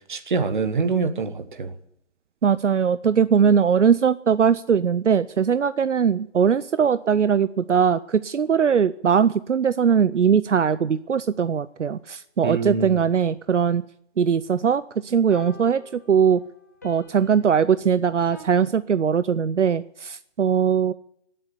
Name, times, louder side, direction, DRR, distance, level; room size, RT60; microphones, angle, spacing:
voice 1, 0.1-1.7 12.4-13.0, right 4 dB, 40° right, 9 dB, 1.5 m, -25 dB
voice 2, 2.4-13.8 14.2-16.4 16.8-20.9, right 7 dB, 75° right, 15 dB, 0.6 m, -20 dB
sound 1, 11.1-11.2 15.3-18.4, left 1 dB, 15° left, 0.7 m, -47 dB
18.0 x 7.7 x 9.7 m, 0.75 s
figure-of-eight pair, 155°, 36 cm